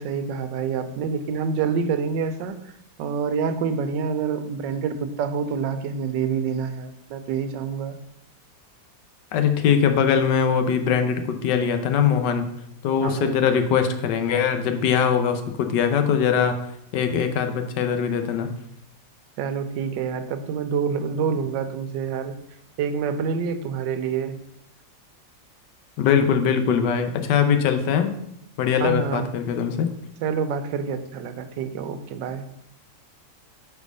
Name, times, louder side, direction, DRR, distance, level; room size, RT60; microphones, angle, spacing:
voice 1, 0.0-2.7 3.0-8.0 13.0-13.4 19.4-22.4 22.8-24.4 28.8-29.3 30.2-32.4, right 6 dB, 85° right, 10 dB, 1.3 m, -27 dB
voice 2, 9.3-12.4 12.8-16.6 16.9-18.5 26.0-28.1 28.6-29.9, left 7 dB, 75° left, 8 dB, 1.3 m, -21 dB
4.7 x 4.5 x 5.2 m, 0.77 s
omnidirectional pair, 1.9 m